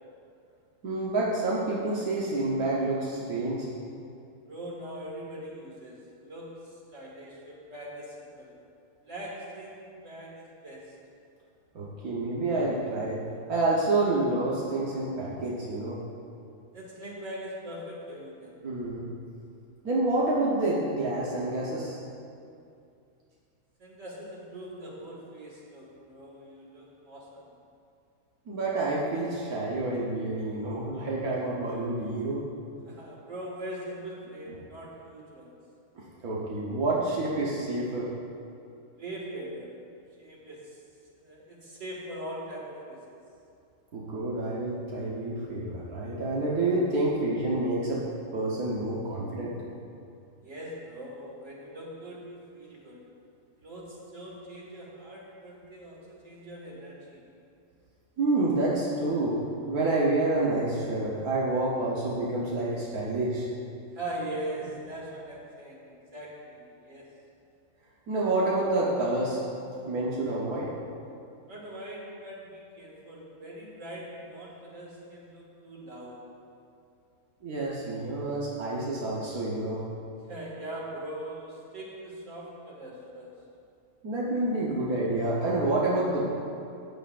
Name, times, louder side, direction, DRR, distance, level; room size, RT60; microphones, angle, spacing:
voice 1, 0.8-3.7 11.7-13.2 13.5-16.0 18.6-19.1 19.8-22.0 28.5-32.4 36.2-38.1 43.9-48.0 48.3-49.5 58.2-59.4 59.7-63.5 68.1-69.4 69.8-70.7 77.4-79.8 84.0-86.4, right 2 dB, 85° right, -6 dB, 1.6 m, -28 dB
voice 2, 4.5-8.5 9.0-10.8 16.7-18.5 23.8-27.5 32.8-35.5 39.0-39.7 40.2-40.8 41.1-43.0 50.4-53.0 53.6-57.2 63.9-67.1 71.5-76.2 80.3-83.3, right 1 dB, 60° right, -4 dB, 2.4 m, -41 dB
14.5 x 9.1 x 2.5 m, 2.6 s
omnidirectional pair, 1.5 m